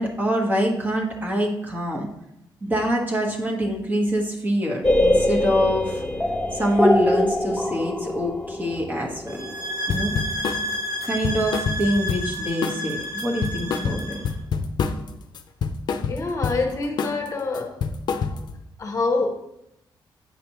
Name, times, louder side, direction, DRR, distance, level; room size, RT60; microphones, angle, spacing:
voice 1, 0.0-2.1 2.6-6.0 6.5-9.5 9.9-10.5 11.0-14.2, equal, 20° right, -1 dB, 1.3 m, -25 dB
sound 1, 4.8-10.6, left 1 dB, 10° left, 0.6 m, -23 dB
sound 2, 9.3-14.3, equal, 45° right, 2.5 m, -31 dB
sound 3, 9.9-10.6 11.0-12.4 12.6-12.9 13.2-15.1 15.4-16.6 17.0-17.3 17.5-18.6, left 5 dB, 60° left, 0.5 m, -27 dB
voice 2, 16.1-17.8 18.8-19.3, left 3 dB, 40° left, 3 dB, 0.9 m, -25 dB
8.6 x 5.1 x 3.1 m, 0.82 s
cardioid pair, 125°, 8 cm